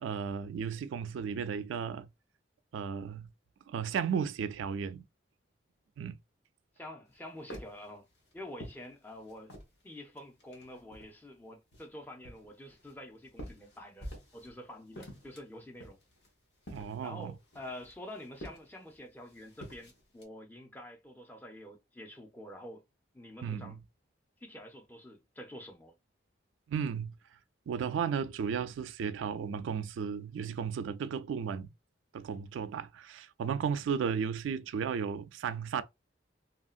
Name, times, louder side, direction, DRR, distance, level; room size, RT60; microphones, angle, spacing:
voice 1, 0.0-2.1 2.7-3.3 3.7-5.0 6.0-6.2 16.7-17.3 23.4-23.8 26.7-27.1 27.7-31.7 32.1-35.8, right 7 dB, 80° right, 0.3 m, -34 dB
voice 2, 6.8-8.1 8.3-9.5 9.8-16.0 17.0-22.8 23.1-23.8 24.4-26.0, left 1 dB, 10° left, 0.5 m, -47 dB
sound 1, 7.1-9.8 10.2-11.3 11.7-14.6 14.8-20.2, equal, 60° left, 1.1 m, -49 dB
2.8 x 2.6 x 2.4 m
head